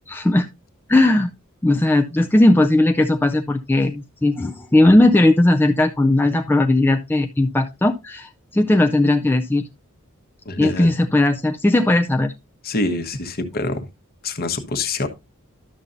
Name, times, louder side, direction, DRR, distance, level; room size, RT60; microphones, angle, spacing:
voice 1, 0.1-0.5 0.9-1.3 1.6-9.6 10.6-12.3, left 1 dB, 10° left, 0.4 m, -17 dB
voice 2, 10.4-10.9 12.6-13.9 14.2-15.1, left 2 dB, 45° left, 1.1 m, -25 dB
11.5 x 6.8 x 2.6 m
head